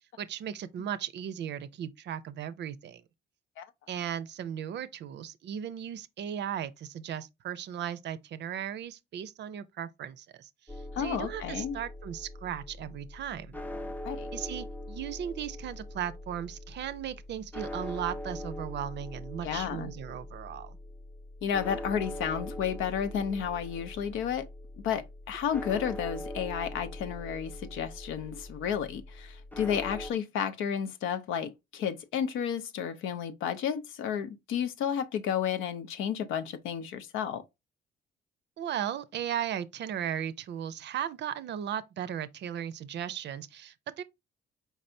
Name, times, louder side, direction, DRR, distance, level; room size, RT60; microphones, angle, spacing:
voice 1, 0.2-3.0 3.9-10.5 11.0-13.6 14.3-20.8 38.6-44.0, right 9 dB, 65° right, 0.5 m, -36 dB
sound 1, 10.7-30.1, left 1 dB, 10° left, 0.4 m, -42 dB
voice 2, 11.0-11.8 14.0-14.3 19.4-19.9 21.4-24.5 24.8-37.4, left 8 dB, 90° left, 0.6 m, -32 dB
4.7 x 3.3 x 2.6 m
cardioid pair, 90°, 20 cm